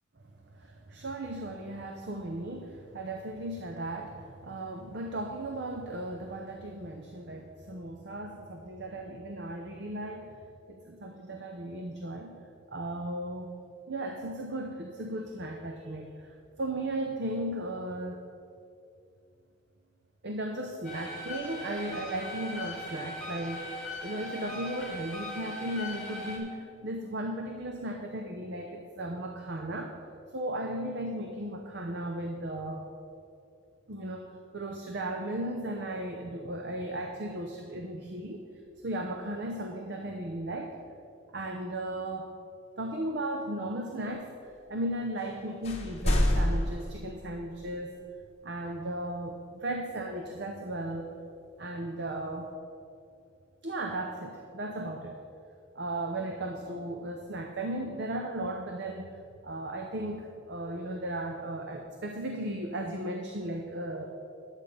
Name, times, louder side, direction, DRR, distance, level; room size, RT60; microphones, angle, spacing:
voice 1, 0.4-10.3 10.7-12.4 12.7-13.5 13.9-18.2 20.2-30.0 30.3-32.9 33.9-38.4 38.8-40.8 41.3-42.3 42.8-44.3 44.7-48.0 48.4-51.1 51.6-52.5 53.6-55.2 55.7-64.1, right 1 dB, 55° right, 3 dB, 0.7 m, -36 dB
sound 1, 20.8-26.4, left 1 dB, 5° left, 2.5 m, -40 dB
sound 2, 45.2-45.4 45.6-47.7, left 1 dB, 30° left, 1.1 m, -28 dB
10.5 x 8.3 x 5.1 m, 2.5 s
head